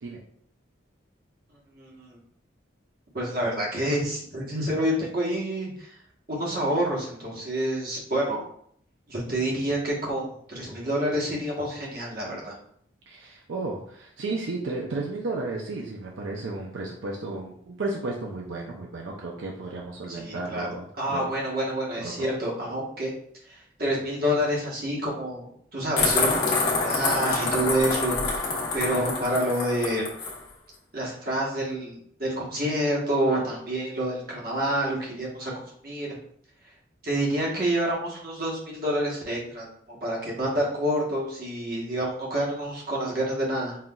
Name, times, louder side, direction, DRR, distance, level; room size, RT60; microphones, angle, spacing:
voice 1, 1.7-2.2 3.1-6.0 6.3-8.4 9.1-12.5 20.1-20.7 21.0-23.1 23.4-26.5 26.8-30.0 30.9-35.5 35.8-36.2 37.0-43.8, right 1 dB, 50° right, -4 dB, 1.1 m, -28 dB
voice 2, 13.1-21.3 22.0-22.3, right 2 dB, 80° right, -1 dB, 0.5 m, -33 dB
sound 1, 26.0-30.4, left 3 dB, 50° left, 1.0 m, -26 dB
5.5 x 2.4 x 2.3 m, 0.65 s
head